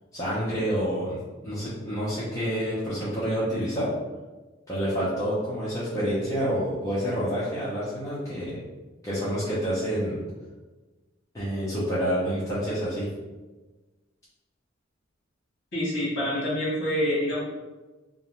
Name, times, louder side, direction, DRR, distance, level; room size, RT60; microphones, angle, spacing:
voice 1, 0.1-3.9 4.7-8.6 9.0-10.2 11.3-13.1, equal, 15° left, -11 dB, 0.5 m, -28 dB
voice 2, 15.7-17.4, equal, 60° left, -6 dB, 1.1 m, -26 dB
2.5 x 2.1 x 2.9 m, 1.2 s
head